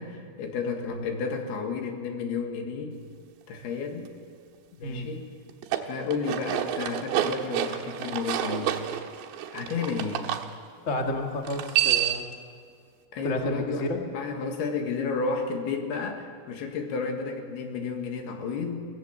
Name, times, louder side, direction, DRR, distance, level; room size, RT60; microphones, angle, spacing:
voice 1, 0.0-2.9 3.5-4.1 4.8-5.3 5.9-8.8 9.5-10.3 13.1-18.8, left 5 dB, 70° left, 4 dB, 3.6 m, -32 dB
sound 1, 5.5-10.4 11.4-12.3, right 12 dB, 90° right, 3.4 m, -29 dB
voice 2, 10.8-12.3 13.2-14.0, left 1 dB, 55° left, 2 dB, 0.8 m, -31 dB
24.0 x 17.5 x 7.4 m, 2.1 s
omnidirectional pair, 4.9 m